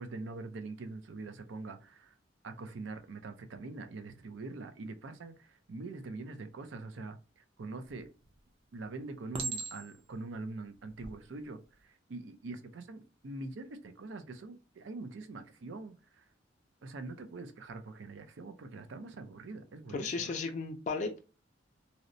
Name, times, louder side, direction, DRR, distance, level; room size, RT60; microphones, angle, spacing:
voice 1, 0.0-2.1 2.4-8.1 8.7-16.2 16.8-20.3, right 3 dB, 80° right, 0.5 m, -44 dB
Chink clink, 7.9-8.4 9.3-10.1 10.9-11.1, right 4 dB, 30° right, 0.5 m, -39 dB
voice 2, 19.9-21.2, left 4 dB, 40° left, 0.3 m, -35 dB
2.8 x 2.0 x 2.5 m
head